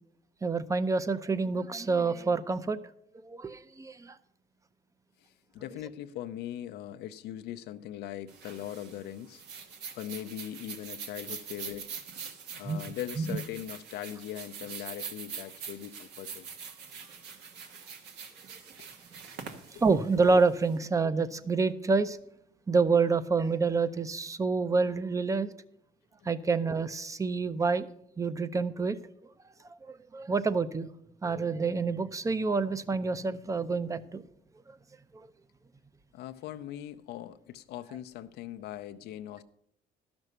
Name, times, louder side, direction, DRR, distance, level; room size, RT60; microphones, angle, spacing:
voice 1, 0.4-2.8 3.2-4.2 12.7-12.8 13.2-13.4 19.8-22.2 22.7-25.5 26.2-27.9 28.2-29.0 29.8-30.9 31.2-34.2 35.1-35.3, right 4 dB, 20° right, 0.6 m, -27 dB
voice 2, 5.2-9.4 9.9-11.9 12.5-16.5 18.8-18.9 19.7-19.8 26.2-26.3 36.1-39.4, left 12 dB, 80° left, 0.6 m, -40 dB
sound 1, 8.3-20.7, right 6 dB, 80° right, 1.4 m, -44 dB
12.0 x 6.1 x 6.6 m
cardioid pair, 110°, 17 cm